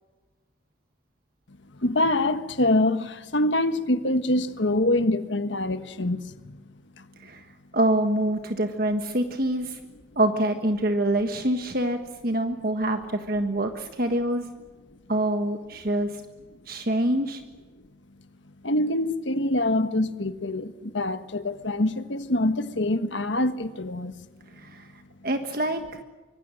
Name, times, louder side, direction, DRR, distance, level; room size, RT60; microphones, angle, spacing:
voice 1, 1.8-6.5 18.6-24.1, left 1 dB, 70° left, 1.5 m, -25 dB
voice 2, 7.7-9.8 10.1-14.5 15.1-16.2 16.7-17.4 24.5-24.9 25.2-26.0, right 1 dB, 50° right, 1.4 m, -25 dB
25.0 x 23.0 x 7.6 m
head